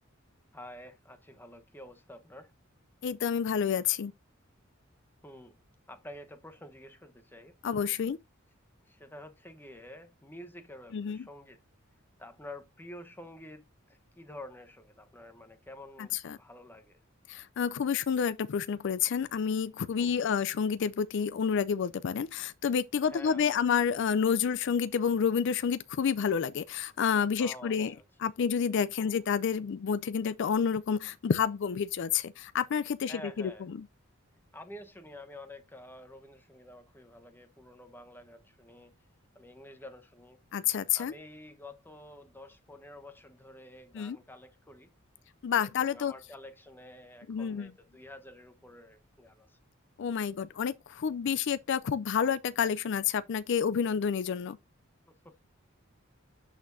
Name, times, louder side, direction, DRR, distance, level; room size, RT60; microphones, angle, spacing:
voice 1, 0.5-2.5 5.2-5.6 5.9-7.6 8.9-11.6 12.2-17.0 20.0-20.3 23.0-23.7 27.4-28.0 29.0-29.2 33.1-33.7 34.5-38.9 39.3-40.4 41.0-44.9 45.6-49.6 55.1-55.5, left 1 dB, 10° left, 1.0 m, -49 dB
voice 2, 3.0-4.1 7.6-8.2 10.9-11.2 16.0-16.4 17.3-27.9 28.2-33.8 40.5-41.1 43.9-44.2 45.4-46.1 47.3-47.7 50.0-54.6, left 7 dB, 60° left, 0.4 m, -29 dB
12.0 x 4.3 x 2.6 m
head